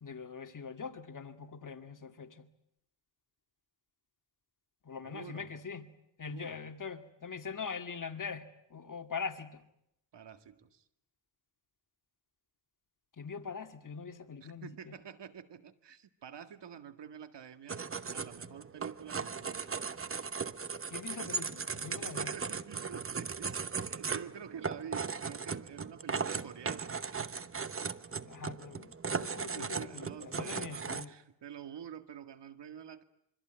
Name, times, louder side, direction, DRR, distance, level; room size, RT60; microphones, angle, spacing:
voice 1, 0.0-2.5 4.8-5.9 6.2-9.6 13.2-14.9 20.9-22.4 28.3-31.1, left 5 dB, 50° left, 2.2 m, -42 dB
voice 2, 5.0-5.5 6.2-6.6 10.1-10.9 14.6-17.8 18.1-19.8 21.8-27.2 29.5-33.0, right 8 dB, 85° right, 2.0 m, -48 dB
sound 1, 17.7-31.0, right 5 dB, 30° right, 1.0 m, -37 dB
26.0 x 24.5 x 9.1 m
wide cardioid pair, 105°, 41 cm